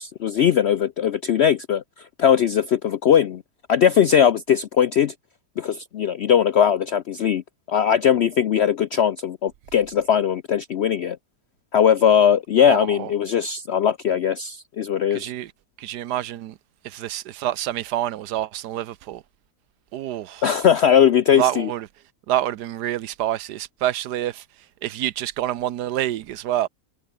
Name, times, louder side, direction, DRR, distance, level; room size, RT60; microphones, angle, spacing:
voice 1, 0.0-3.4 3.7-5.1 5.6-7.4 7.7-11.2 11.7-15.3 20.4-21.7, left 8 dB, 70° left, 0.6 m, -19 dB
voice 2, 12.7-13.1 15.1-15.5 15.8-16.6 16.8-19.2 19.9-20.5 21.3-21.9 22.3-24.4 24.8-26.7, right 12 dB, 80° right, 1.3 m, -27 dB
omnidirectional pair, 1.7 m